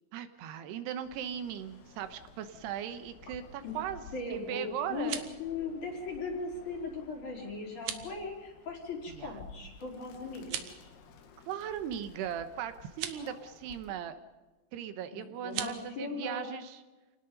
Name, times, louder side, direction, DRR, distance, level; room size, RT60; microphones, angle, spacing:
voice 1, 0.1-5.3 9.1-9.4 11.5-14.2 14.7-16.8, right 9 dB, 80° right, 10 dB, 3.2 m, -38 dB
Bird, 1.0-14.1, left 4 dB, 75° left, 3.8 m, -54 dB
voice 2, 4.1-10.9 13.1-13.4 15.1-16.5, left 3 dB, 50° left, -1 dB, 5.4 m, -39 dB
sound 1, 4.8-5.4 7.7-8.1 10.4-10.8 12.9-13.2 15.4-15.8, right 10 dB, 65° right, 2.4 m, -38 dB
28.0 x 19.5 x 5.4 m, 1.2 s
omnidirectional pair, 4.7 m